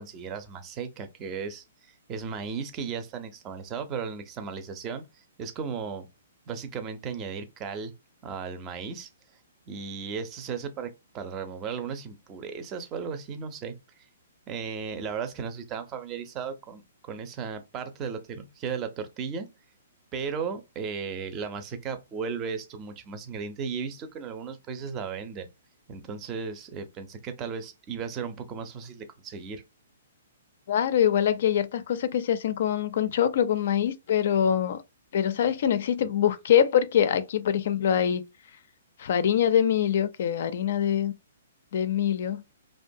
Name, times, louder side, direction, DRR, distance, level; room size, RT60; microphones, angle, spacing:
voice 1, 0.0-6.1 6.5-7.9 8.2-9.1 9.7-13.7 14.5-19.5 20.1-25.5 25.9-29.6, right 6 dB, 25° right, 0.5 m, -35 dB
voice 2, 30.7-34.8 35.1-38.2 39.0-41.1 41.7-42.4, left 9 dB, 60° left, 0.4 m, -24 dB
2.4 x 2.2 x 2.6 m
hypercardioid pair, 130°, 0 cm